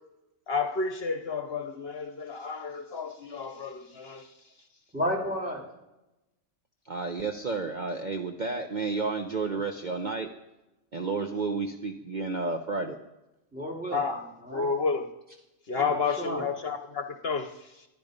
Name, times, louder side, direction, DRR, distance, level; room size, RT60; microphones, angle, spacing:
voice 1, 0.5-4.3 13.9-15.1 15.7-17.9, left 5 dB, 55° left, 7 dB, 1.1 m, -31 dB
voice 2, 4.9-5.6 13.5-14.0 14.5-14.7 15.8-16.5, equal, 5° right, 0 dB, 3.2 m, -32 dB
voice 3, 6.9-10.3 10.9-13.0 16.3-16.4, right 4 dB, 40° right, 4 dB, 1.0 m, -31 dB
25.5 x 11.0 x 5.3 m, 0.97 s
omnidirectional pair, 1.3 m